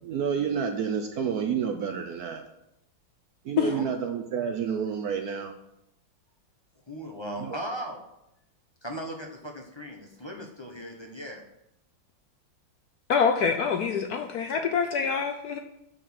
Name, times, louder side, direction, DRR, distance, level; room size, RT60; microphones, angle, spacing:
voice 1, 0.0-2.4 3.4-5.5 7.4-7.6, right 7 dB, 65° right, 5 dB, 1.0 m, -29 dB
voice 2, 6.9-8.0 8.8-11.4, equal, 20° left, 1 dB, 0.8 m, -37 dB
voice 3, 13.1-15.6, left 6 dB, 65° left, 6 dB, 1.0 m, -25 dB
6.7 x 6.1 x 6.3 m, 0.84 s
omnidirectional pair, 2.1 m